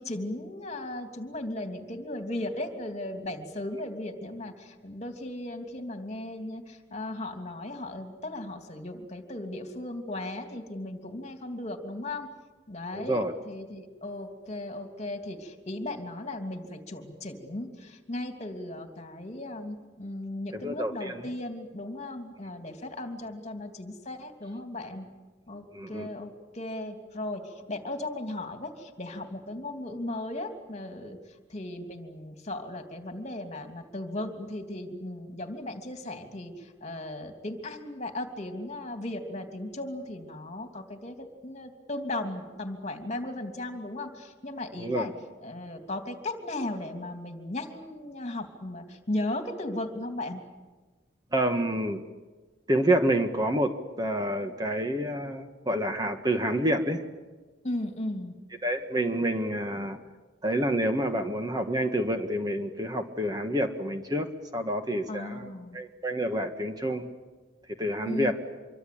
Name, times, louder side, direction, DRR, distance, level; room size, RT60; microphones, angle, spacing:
voice 1, 0.0-12.3 12.7-25.1 25.5-31.2 31.5-45.1 45.4-50.4 57.6-58.3 65.1-65.8 68.0-68.3, left 1 dB, 35° left, 5 dB, 3.0 m, -36 dB
voice 2, 12.9-13.3 20.5-21.2 25.7-26.1 44.8-45.1 51.3-52.0 52.7-57.0 58.6-60.0 60.4-64.3 64.5-67.1 67.8-68.3, right 1 dB, 20° right, 6 dB, 1.5 m, -28 dB
26.0 x 24.0 x 8.7 m, 1.3 s
head